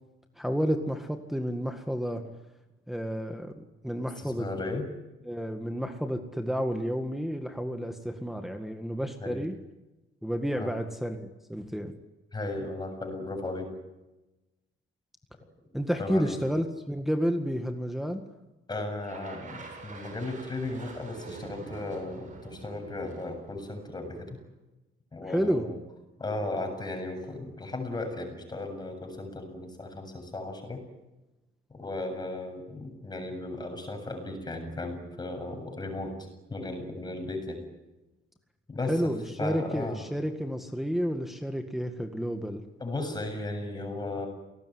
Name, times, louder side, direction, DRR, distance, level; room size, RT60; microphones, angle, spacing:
voice 1, 0.4-2.2 2.9-4.5 5.2-9.6 10.2-11.9 15.7-18.2 25.3-25.7 38.9-42.6, equal, ahead, 4 dB, 1.8 m, -30 dB
voice 2, 4.2-4.9 9.2-9.4 10.6-10.7 12.3-13.7 16.0-16.4 18.7-24.4 25.1-25.8 26.2-30.8 31.7-36.1 36.5-37.6 38.7-39.1 39.4-40.0 42.8-44.3, left 2 dB, 20° left, 4 dB, 7.6 m, -35 dB
sound 1, 19.0-24.3, right 3 dB, 35° right, 7.6 m, -45 dB
29.0 x 19.0 x 9.6 m, 1.0 s
cardioid pair, 150°, 21 cm